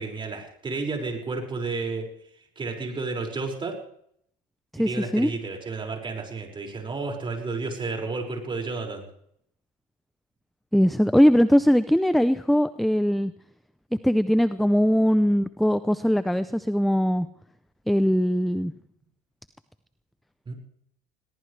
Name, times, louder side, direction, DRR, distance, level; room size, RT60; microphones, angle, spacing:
voice 1, 0.0-2.1 2.6-3.8 4.8-9.1 20.5-20.6, right 3 dB, 25° right, 1 dB, 5.7 m, -31 dB
voice 2, 4.7-5.3 10.7-13.3 14.0-17.3 17.9-18.7, equal, ahead, 13 dB, 0.6 m, -21 dB
21.5 x 18.5 x 3.4 m, 0.70 s
supercardioid pair, 100°, 19 cm